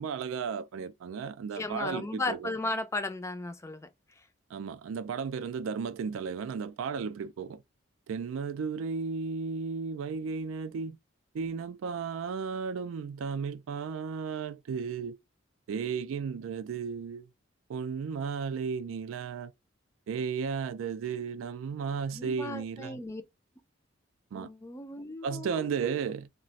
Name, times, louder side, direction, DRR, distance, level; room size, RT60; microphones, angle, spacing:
voice 1, 0.0-2.5 4.5-7.6 8.1-11.0 11.3-15.2 15.7-17.3 17.7-19.5 20.1-23.0 24.3-24.5 25.2-26.3, right 6 dB, 85° right, 0.3 m, -34 dB
voice 2, 1.6-3.9 22.1-23.2 24.3-25.6, left 2 dB, 15° left, 0.3 m, -35 dB
2.4 x 2.1 x 3.9 m
head